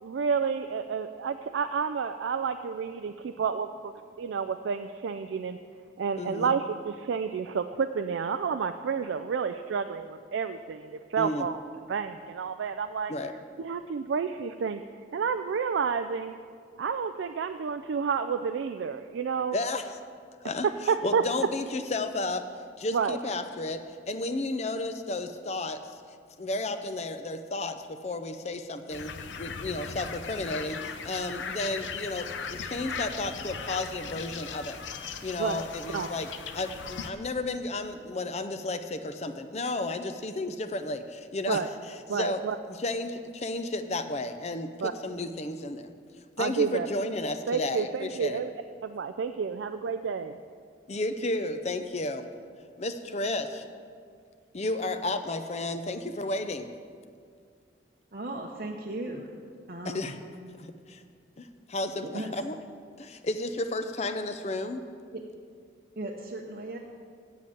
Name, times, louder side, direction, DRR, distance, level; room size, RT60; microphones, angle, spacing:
voice 1, 0.0-3.9 4.2-5.6 6.0-11.6 11.9-13.1 13.6-14.8 15.1-16.3 16.8-19.6 20.6-21.2 22.9-23.2 35.4-35.6 35.9-36.1 41.5-41.7 42.1-42.6 44.8-44.9 46.4-46.9 47.5-48.5 48.8-50.4, right 6 dB, 85° right, 8 dB, 0.4 m, -30 dB
voice 2, 6.2-6.5 11.2-11.5 13.1-13.3 19.5-19.8 20.4-20.7 21.0-22.5 22.8-26.0 26.4-34.8 35.2-36.3 36.5-42.4 42.7-45.9 46.4-48.4 50.9-52.3 52.8-53.7 54.5-56.7 59.8-60.2 60.5-61.0 61.4-62.6 63.0-64.8, left 2 dB, 35° left, 8 dB, 0.5 m, -32 dB
sound 1, 28.9-37.1, left 5 dB, 85° left, 0.6 m, -38 dB
voice 3, 58.1-59.3 59.7-60.1 62.0-62.3 65.1-65.2 66.0-66.8, right 1 dB, 50° right, -1 dB, 0.7 m, -36 dB
7.8 x 7.6 x 8.5 m, 2.1 s
head